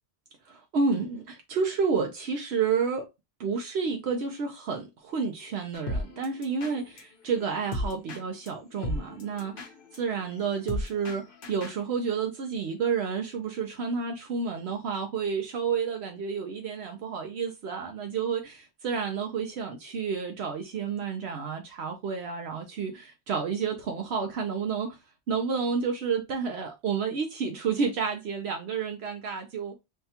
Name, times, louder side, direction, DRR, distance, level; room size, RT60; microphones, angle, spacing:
voice 1, 0.5-3.1 3.4-25.0 25.3-29.8, right 5 dB, 75° right, 0.9 m, -30 dB
sound 1, 5.7-11.8, left 1 dB, 60° left, 0.9 m, -37 dB
5.6 x 2.2 x 2.8 m
omnidirectional pair, 1.1 m